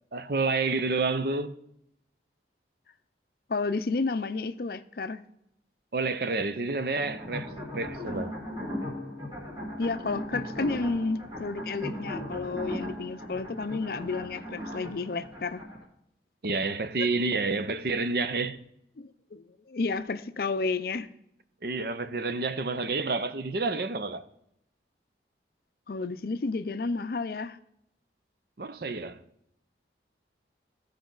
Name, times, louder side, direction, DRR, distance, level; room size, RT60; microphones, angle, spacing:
voice 1, 0.1-1.6 5.9-8.4 16.4-18.6 21.6-24.2 28.6-29.2, right 3 dB, 55° right, 0.6 m, -29 dB
voice 2, 3.5-5.2 9.8-15.6 19.0-21.1 25.9-27.6, left 3 dB, 55° left, 0.5 m, -31 dB
sound 1, 7.0-15.8, left 1 dB, 25° right, 2.0 m, -37 dB
15.0 x 5.1 x 3.9 m
head